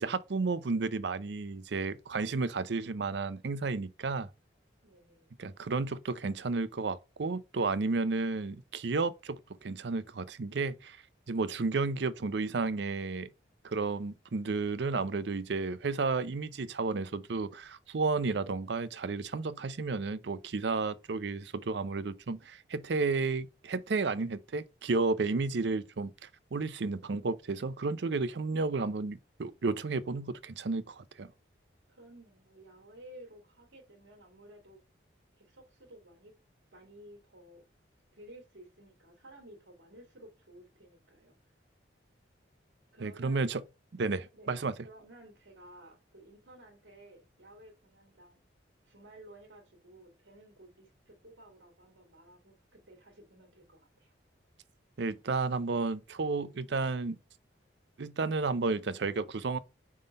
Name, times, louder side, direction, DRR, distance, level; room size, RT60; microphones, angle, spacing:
voice 1, 0.0-4.3 5.4-11.0 11.3-13.3 13.6-26.1 26.5-31.3 43.0-43.6 43.9-44.7 55.0-57.2 58.0-59.6, right 3 dB, 65° right, 0.5 m, -32 dB
voice 2, 4.8-5.3 31.9-34.8 35.4-36.3 36.7-37.6 38.1-41.3 42.9-43.4 44.3-48.4 48.8-54.1, right 1 dB, 80° right, 1.9 m, -55 dB
5.5 x 3.7 x 5.0 m
head